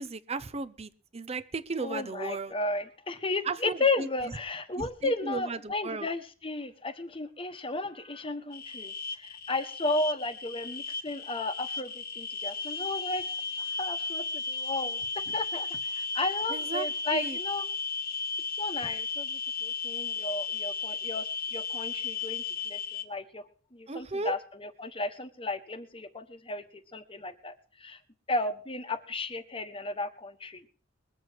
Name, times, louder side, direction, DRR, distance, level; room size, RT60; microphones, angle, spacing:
voice 1, 0.0-2.6 3.5-4.1 4.8-6.1 16.5-17.4 23.9-24.3, right 3 dB, 35° right, 15 dB, 0.8 m, -35 dB
voice 2, 1.8-13.2 13.6-17.6 18.6-23.4 23.7-26.6 26.9-28.0 28.3-30.6, left 2 dB, 30° left, 8 dB, 1.2 m, -34 dB
sound 1, 8.5-23.0, left 4 dB, 50° left, 1.2 m, -35 dB
21.5 x 7.9 x 4.6 m, 0.40 s
head